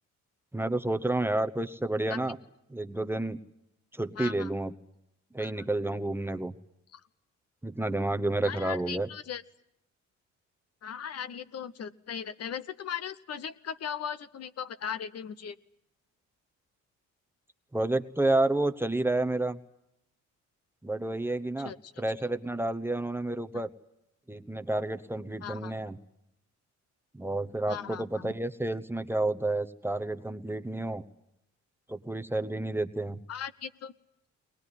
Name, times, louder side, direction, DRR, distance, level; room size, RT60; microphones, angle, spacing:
voice 1, 0.5-2.4 2.7-3.4 3.9-4.7 5.3-6.5 7.6-9.1 17.7-19.6 20.8-23.7 24.3-26.0 27.1-31.0 31.9-33.2, right 2 dB, 10° right, 9 dB, 0.9 m, -30 dB
voice 2, 4.2-4.5 5.4-5.6 6.9-7.0 8.4-9.4 10.8-15.6 21.6-21.9 23.5-23.6 25.4-25.7 27.7-28.3 33.3-33.9, left 8 dB, 55° left, 13 dB, 0.9 m, -38 dB
21.0 x 20.0 x 9.9 m, 0.83 s
cardioid pair, 90°, 30 cm